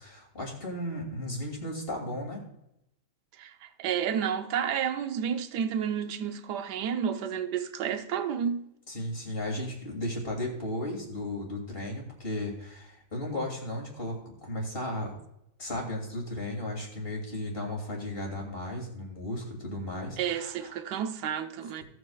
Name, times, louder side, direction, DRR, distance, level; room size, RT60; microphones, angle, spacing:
voice 1, 0.0-2.5 8.9-15.1 15.6-20.7, left 1 dB, 35° left, 2.6 m, -35 dB
voice 2, 3.4-8.6 20.2-21.8, right 8 dB, 80° right, 1.3 m, -31 dB
17.0 x 7.9 x 2.3 m
omnidirectional pair, 1.7 m